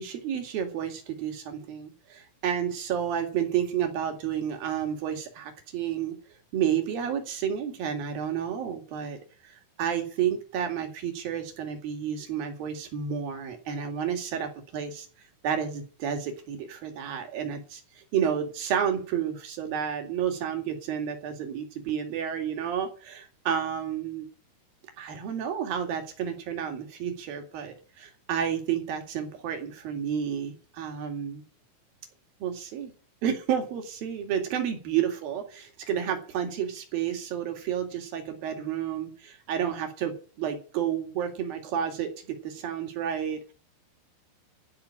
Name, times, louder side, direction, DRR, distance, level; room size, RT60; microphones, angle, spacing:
voice 1, 0.0-6.2 6.5-15.1 15.4-24.3 25.0-31.4 32.4-32.9 33.2-43.5, right 8 dB, 55° right, 5 dB, 3.7 m, -31 dB
15.5 x 6.2 x 8.8 m, 0.39 s
omnidirectional pair, 5.2 m